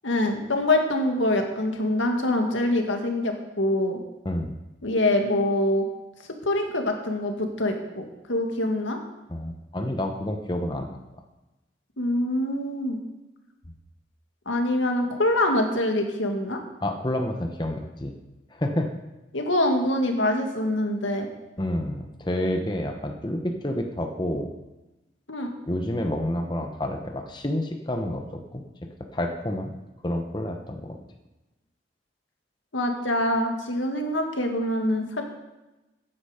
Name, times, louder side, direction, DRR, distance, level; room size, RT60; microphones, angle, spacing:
voice 1, 0.0-4.0 4.8-5.8 6.5-9.0 12.0-13.0 14.5-16.6 19.3-21.3 25.3-25.5 32.7-35.3, left 1 dB, 90° left, 3 dB, 2.0 m, -25 dB
voice 2, 4.2-4.6 9.3-11.0 16.8-18.1 18.5-18.9 21.6-24.5 25.7-28.6 29.1-29.7 30.0-31.0, left 1 dB, 25° left, 4 dB, 1.1 m, -29 dB
15.5 x 10.0 x 5.1 m, 1.0 s
head